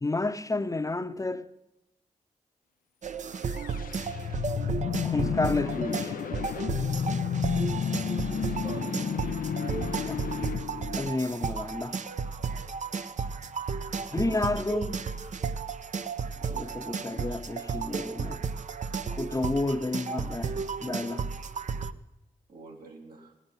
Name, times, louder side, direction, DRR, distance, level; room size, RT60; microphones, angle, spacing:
voice 1, 0.0-1.5 5.0-6.1 9.9-10.2 11.0-12.0 14.1-15.0 16.4-18.4 19.1-20.6 20.8-21.3, left 2 dB, 20° left, 0.8 m, -31 dB
sound 1, 3.0-21.9, right 5 dB, 55° right, 0.7 m, -33 dB
sound 2, 3.4-11.6, left 7 dB, 70° left, 0.5 m, -31 dB
voice 2, 8.3-9.5 22.5-23.3, right 2 dB, 85° right, 2.6 m, -47 dB
17.0 x 9.6 x 5.7 m
supercardioid pair, 40°, 15 cm